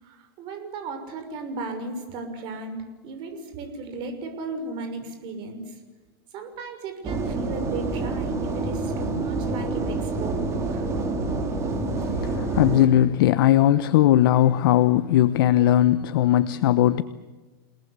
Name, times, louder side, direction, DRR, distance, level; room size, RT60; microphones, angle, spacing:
voice 1, 0.0-5.8 6.3-10.4 10.7-10.9, right 3 dB, 40° right, 6.2 m, -35 dB
sound 1, 7.0-12.9, right 3 dB, 20° right, 4.0 m, -27 dB
voice 2, 12.2-17.0, left 12 dB, 65° left, 1.1 m, -19 dB
29.5 x 19.0 x 8.3 m
supercardioid pair, 145°, 13 cm